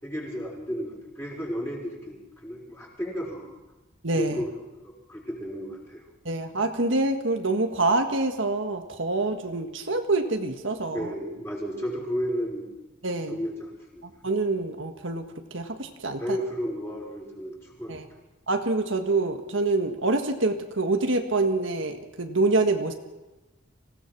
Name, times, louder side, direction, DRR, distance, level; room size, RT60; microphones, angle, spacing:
voice 1, 0.0-3.6 4.1-4.5 4.8-6.1 10.9-12.7 13.3-14.1 16.2-18.0, equal, 10° left, -3 dB, 5.8 m, -33 dB
voice 2, 4.0-4.3 6.2-11.1 13.0-13.4 14.2-15.3 15.5-16.4 17.9-18.0 18.5-22.9, right 2 dB, 70° right, 5 dB, 1.7 m, -26 dB
25.5 x 17.0 x 6.1 m, 1.1 s
head